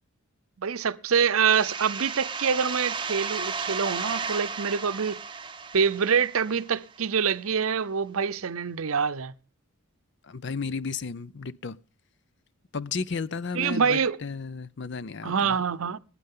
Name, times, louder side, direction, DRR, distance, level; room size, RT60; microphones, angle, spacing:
voice 1, 0.6-5.2 5.7-9.3 13.5-14.2 15.2-16.0, right 6 dB, 70° right, 0.6 m, -25 dB
sound 1, 1.5-7.0, right 5 dB, 20° right, 0.9 m, -34 dB
voice 2, 10.2-11.8 12.7-15.6, left 5 dB, 50° left, 0.6 m, -33 dB
21.5 x 9.9 x 3.7 m
head